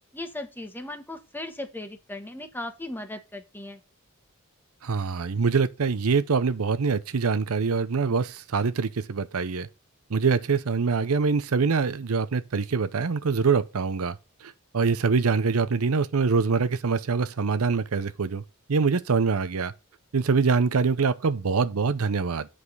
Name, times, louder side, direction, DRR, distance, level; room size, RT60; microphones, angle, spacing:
voice 1, 0.1-3.8, left 1 dB, 10° left, 1.3 m, -37 dB
voice 2, 4.8-9.7 10.1-18.4 18.7-19.7 20.1-22.5, right 5 dB, 80° right, 0.6 m, -24 dB
8.4 x 5.0 x 5.5 m
head